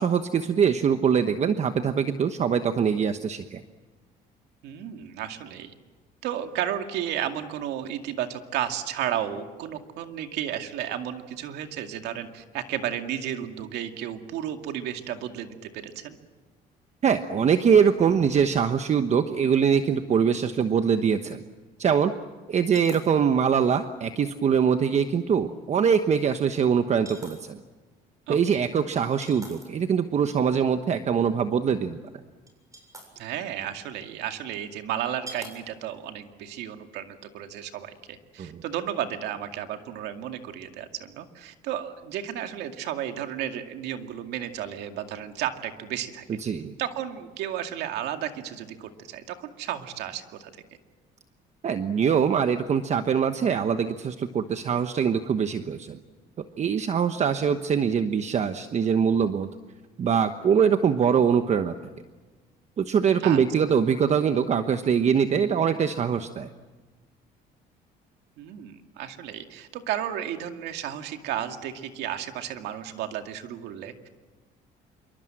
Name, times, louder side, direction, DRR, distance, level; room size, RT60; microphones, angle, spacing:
voice 1, 0.0-3.6 17.0-21.4 21.8-22.1 22.5-27.6 28.3-32.0 38.4-38.6 46.4-46.7 51.6-56.0 56.4-59.5 60.0-61.7 62.8-66.5, right 7 dB, 40° right, 8 dB, 1.1 m, -23 dB
voice 2, 4.6-5.7 6.2-16.2 28.3-28.7 33.2-46.2 46.8-50.5 63.2-63.4 68.4-74.1, right 10 dB, 85° right, 6 dB, 2.2 m, -33 dB
sound 1, 19.3-19.4 19.7-19.8 22.6-23.1 23.6-23.7 25.4-25.5 27.0-27.5 29.0-29.8 32.1-32.2 32.5-33.1 34.2-34.3 35.3-35.6 36.0-36.2, right 2 dB, 20° right, 7.3 m, -44 dB
27.0 x 24.0 x 7.7 m, 1.3 s
cardioid pair, 110°, 17 cm